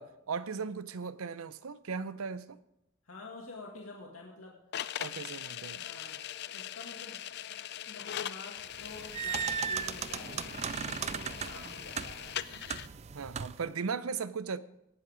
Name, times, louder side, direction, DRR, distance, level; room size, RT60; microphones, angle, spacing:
voice 1, 0.0-2.6 5.0-5.8 13.1-14.6, right 5 dB, 90° right, 15 dB, 0.6 m, -37 dB
voice 2, 3.1-4.6 5.0-5.2 5.8-6.2 6.5-7.2 7.9-12.3, left 3 dB, 85° left, -1 dB, 2.0 m, -48 dB
sound 1, 4.7-12.9, left 11 dB, 55° left, 0.4 m, -41 dB
sound 2, 8.7-13.7, right 7 dB, 30° right, 0.4 m, -37 dB
18.0 x 7.7 x 5.0 m, 0.83 s
head